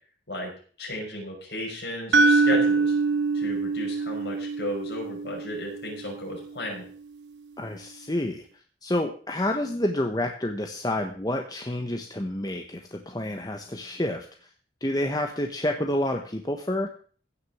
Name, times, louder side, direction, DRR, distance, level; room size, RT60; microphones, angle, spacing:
voice 1, 0.8-2.9 3.3-6.8, left 1 dB, 65° left, 0 dB, 6.1 m, -34 dB
sound 1, 2.1-6.2, right 3 dB, 85° right, 0.8 m, -24 dB
voice 2, 7.6-8.5 8.8-14.3 14.8-16.9, left 1 dB, 20° left, 3 dB, 1.2 m, -29 dB
16.0 x 6.7 x 7.2 m, 0.43 s
head